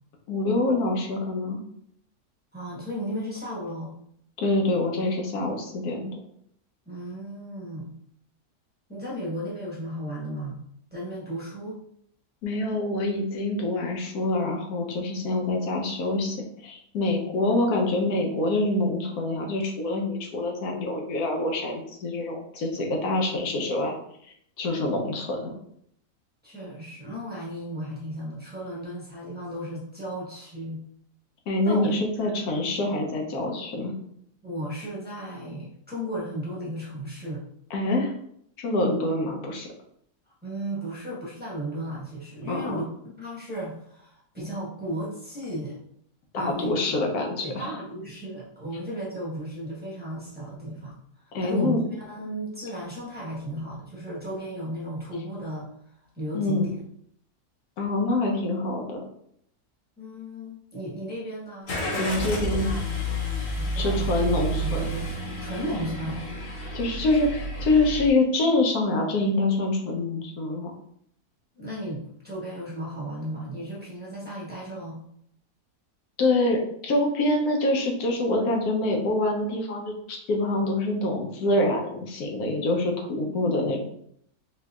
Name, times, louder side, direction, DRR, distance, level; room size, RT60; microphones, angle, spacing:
voice 1, 0.3-1.6 4.4-6.1 12.4-16.4 16.6-24.0 24.6-25.5 31.5-33.9 37.7-38.1 38.6-39.7 42.5-42.8 46.3-47.7 51.3-51.8 56.3-56.7 57.8-59.0 62.0-62.7 63.8-64.9 66.7-70.7 76.2-83.8, left 2 dB, 80° left, 1 dB, 1.2 m, -25 dB
voice 2, 2.5-3.9 6.8-8.0 8.9-10.6 10.9-11.8 17.6-17.7 26.4-30.8 31.6-31.9 32.2-32.6 34.4-37.4 40.4-42.9 43.2-45.8 46.4-46.7 47.4-51.8 52.1-56.7 60.0-62.3 62.6-63.1 63.6-64.1 64.6-65.1 65.4-66.2 71.5-75.0, equal, 5° right, -7 dB, 1.0 m, -35 dB
Car / Engine starting, 61.7-68.1, right 1 dB, 45° left, 0.7 m, -30 dB
4.3 x 2.8 x 2.3 m, 0.70 s
omnidirectional pair, 1.6 m